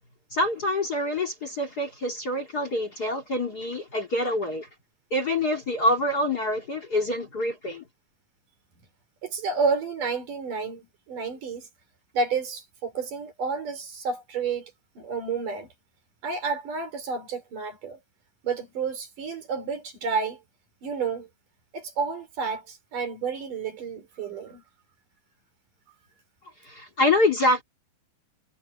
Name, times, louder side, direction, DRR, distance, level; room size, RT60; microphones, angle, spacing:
voice 1, 0.3-4.7 5.1-7.8 26.7-27.6, left 1 dB, 30° left, 2.5 m, -26 dB
voice 2, 9.2-11.7 12.1-15.7 16.2-18.0 18.4-20.4 20.8-21.3 21.7-24.6, right 5 dB, 70° right, 6.0 m, -30 dB
omnidirectional pair, 3.8 m